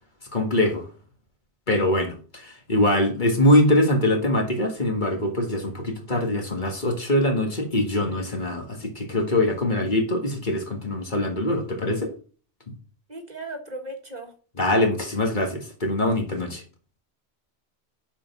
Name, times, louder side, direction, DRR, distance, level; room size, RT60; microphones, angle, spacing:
voice 1, 0.3-0.8 1.7-12.1 14.6-16.6, left 1 dB, 45° left, 1.8 m, -23 dB
voice 2, 13.1-14.3, right 2 dB, 40° right, 1.7 m, -36 dB
7.1 x 5.4 x 5.9 m
omnidirectional pair, 1.1 m